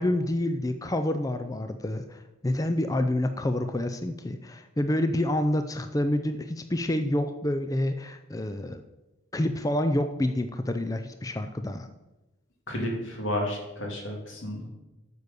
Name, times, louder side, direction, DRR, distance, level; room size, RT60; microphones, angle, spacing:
voice 1, 0.0-8.8 9.3-11.9, left 1 dB, 15° left, 8 dB, 0.4 m, -28 dB
voice 2, 12.7-14.7, left 1 dB, 80° left, 1 dB, 2.6 m, -31 dB
8.4 x 6.7 x 6.9 m, 1.0 s
head